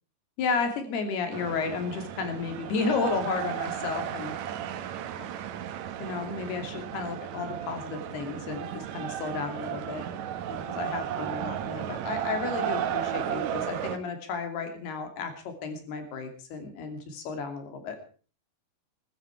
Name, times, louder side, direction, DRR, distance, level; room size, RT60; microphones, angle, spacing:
voice 1, 0.4-4.3 5.2-5.3 6.0-15.3 15.6-18.0, left 4 dB, 70° left, 6 dB, 4.6 m, -33 dB
sound 1, 1.3-14.0, right 10 dB, 80° right, 1.6 m, -34 dB
20.5 x 13.0 x 4.7 m, 0.39 s
omnidirectional pair, 4.8 m